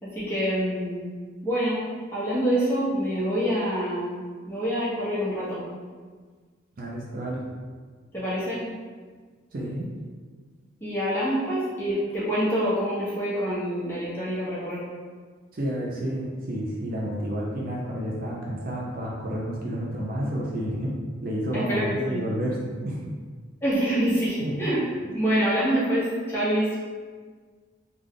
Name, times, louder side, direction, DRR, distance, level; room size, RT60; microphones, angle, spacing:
voice 1, 0.0-1.0 1.4-1.8 2.1-4.2 4.5-5.6 8.1-8.6 10.8-14.8 21.5-22.3 23.6-26.7, equal, 10° left, -10 dB, 1.0 m, -26 dB
voice 2, 6.8-7.4 9.5-9.9 15.5-20.9 21.2-23.0 24.4-24.5, equal, 45° right, -4 dB, 0.5 m, -30 dB
3.4 x 2.3 x 3.6 m, 1.5 s
head